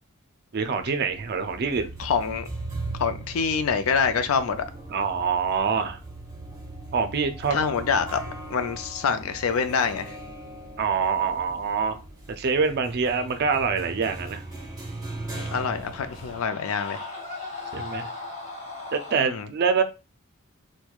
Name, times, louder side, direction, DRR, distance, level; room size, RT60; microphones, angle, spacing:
voice 1, 0.5-1.9 4.9-6.0 6.9-7.6 10.8-12.0 12.4-14.4 17.7-18.1 18.9-19.8, right 5 dB, 50° right, 0.4 m, -25 dB
sound 1, 0.6-16.4, right 2 dB, 15° right, 1.1 m, -39 dB
voice 2, 2.0-2.5 3.0-4.6 7.5-8.2 8.5-10.1 15.3-17.0 19.1-19.5, left 6 dB, 75° left, 0.4 m, -26 dB
Screaming, 14.8-19.3, left 3 dB, 30° left, 1.1 m, -38 dB
4.5 x 2.2 x 2.3 m
head